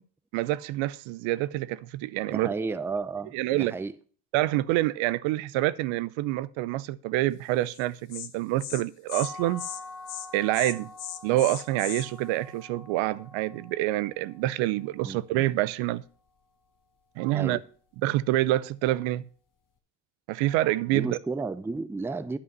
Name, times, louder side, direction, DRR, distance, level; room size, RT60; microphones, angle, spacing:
voice 1, 0.3-2.5 3.3-3.7 4.3-9.7 10.3-10.9 11.2-16.0 17.2-17.6 18.0-19.2 20.3-21.2, right 16 dB, 70° right, 0.6 m, -27 dB
voice 2, 2.3-3.9 15.0-15.2 17.3-17.7 20.9-22.4, right 4 dB, 5° right, 0.4 m, -32 dB
Insect, 7.7-7.8 8.1-8.3 8.6-8.8 9.1-9.3 9.6-9.8 10.1-10.3 10.5-12.1, left 11 dB, 60° left, 1.0 m, -37 dB
sound 1, 9.1-14.9, left 3 dB, 40° left, 1.2 m, -46 dB
9.8 x 5.5 x 5.4 m
supercardioid pair, 75°, 48 cm